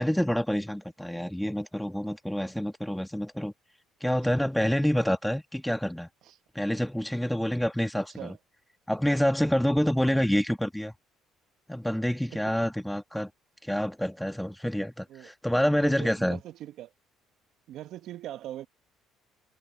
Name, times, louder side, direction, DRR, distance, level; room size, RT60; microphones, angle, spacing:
voice 1, 0.0-3.5 4.0-6.1 6.6-8.3 8.9-10.9 11.7-13.3 13.6-16.4, equal, 5° left, 1.7 m, -27 dB
voice 2, 15.6-16.9 17.7-18.7, right 13 dB, 70° right, 1.3 m, -42 dB
supercardioid pair, 70°, 0 cm